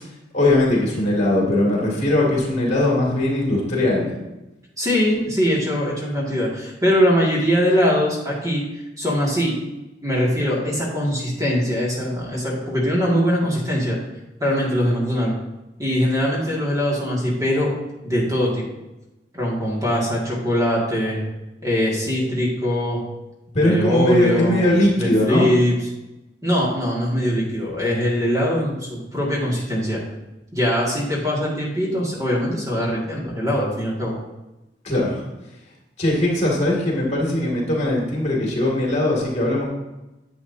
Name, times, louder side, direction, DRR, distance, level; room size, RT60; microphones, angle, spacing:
voice 1, 0.3-4.1 23.5-25.5 34.8-35.3 36.0-39.6, left 1 dB, 40° left, -2 dB, 2.3 m, -20 dB
voice 2, 4.8-8.6 9.0-9.5 10.0-14.0 14.4-15.3 15.8-17.7 18.0-18.6 19.3-21.2 21.6-23.0 23.6-24.6 24.9-25.8 26.4-30.0 30.5-34.2, equal, 20° right, -4 dB, 2.0 m, -22 dB
10.5 x 7.8 x 2.7 m, 1.0 s
head